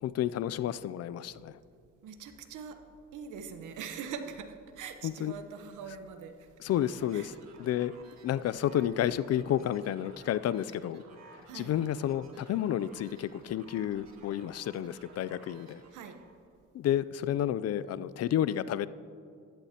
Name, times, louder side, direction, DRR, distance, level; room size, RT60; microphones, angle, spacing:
voice 1, 0.0-1.5 5.0-5.3 6.6-7.3 7.6-7.9 8.2-11.0 11.5-15.8 16.7-18.9, left 11 dB, 55° left, 16 dB, 0.4 m, -31 dB
voice 2, 2.0-2.8 3.1-6.4 7.1-7.3 11.5-11.8 15.9-16.2, right 6 dB, 80° right, 7 dB, 1.0 m, -42 dB
sound 1, 6.7-16.4, right 4 dB, 60° right, 1.9 m, -56 dB
15.5 x 11.5 x 2.9 m, 2.4 s
cardioid pair, 90°, 30 cm